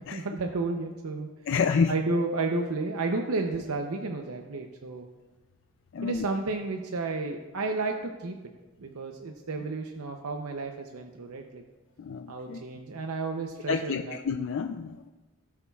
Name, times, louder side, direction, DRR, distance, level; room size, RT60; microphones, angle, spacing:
voice 1, 0.1-1.3 1.9-5.1 6.0-8.4 8.8-11.6 12.3-14.2, right 3 dB, 85° right, 4 dB, 0.7 m, -32 dB
voice 2, 1.5-2.0 5.9-6.2 12.0-12.6 13.7-15.1, left 5 dB, 60° left, 7 dB, 0.4 m, -29 dB
17.5 x 7.0 x 2.4 m, 1.2 s
head